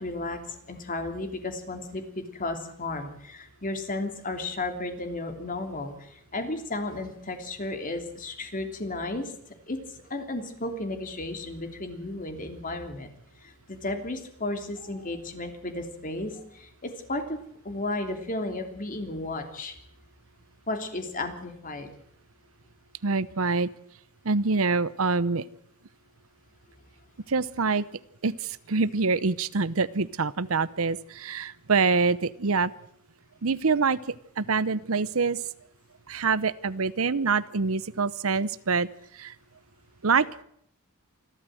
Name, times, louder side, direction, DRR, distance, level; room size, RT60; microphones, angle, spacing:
voice 1, 0.0-9.3 9.7-9.8 10.1-13.1 13.4-17.4 17.6-19.8 20.7-21.9, left 2 dB, 40° left, 6 dB, 3.1 m, -34 dB
voice 2, 23.0-23.7 24.2-25.5 27.3-27.9 28.2-32.7 33.4-35.4 36.1-38.9 39.1-39.3 40.0-40.4, right 4 dB, 75° right, 18 dB, 0.8 m, -25 dB
27.0 x 12.5 x 7.8 m, 0.69 s
head